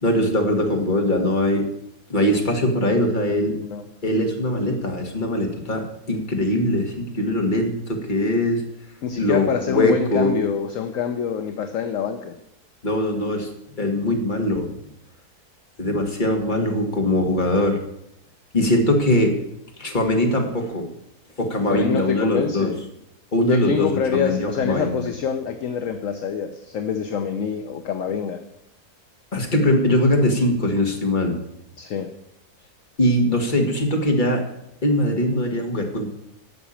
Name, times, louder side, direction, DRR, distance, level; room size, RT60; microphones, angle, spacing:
voice 1, 0.0-1.7 2.1-3.5 4.0-8.6 9.2-10.4 12.8-13.5 13.8-14.7 15.8-17.8 18.5-19.3 19.8-20.8 21.4-22.7 23.3-25.0 29.3-31.3 33.0-34.4 34.8-36.1, left 1 dB, 30° left, 2 dB, 2.0 m, -21 dB
voice 2, 9.0-12.4 21.7-22.8 23.4-28.4 31.8-32.1, left 7 dB, 60° left, 7 dB, 1.1 m, -26 dB
11.0 x 6.1 x 8.7 m, 0.80 s
omnidirectional pair, 1.7 m